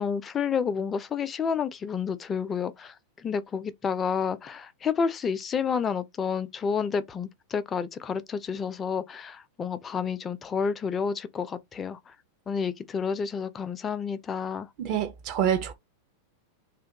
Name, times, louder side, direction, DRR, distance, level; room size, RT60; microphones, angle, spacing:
voice 1, 0.0-2.9 3.2-12.0 12.5-14.7, left 6 dB, 20° left, 0.3 m, -30 dB
voice 2, 14.8-15.7, right 9 dB, 40° right, 0.6 m, -26 dB
2.2 x 2.1 x 2.8 m
figure-of-eight pair, 90°, 0 cm